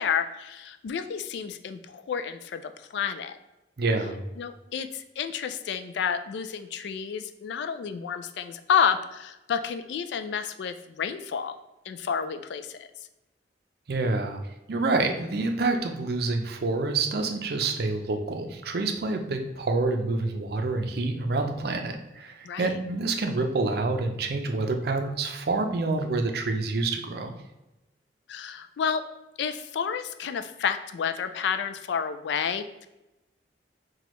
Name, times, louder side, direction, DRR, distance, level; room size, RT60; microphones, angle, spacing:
voice 1, 0.0-3.4 4.4-11.6 11.9-12.9 22.4-22.7 28.3-29.0 29.4-32.9, left 7 dB, 70° left, 9 dB, 0.3 m, -30 dB
voice 2, 3.8-4.2 13.9-14.4 14.7-27.3, right 3 dB, 55° right, 5 dB, 0.5 m, -27 dB
5.9 x 2.3 x 3.0 m, 0.98 s
head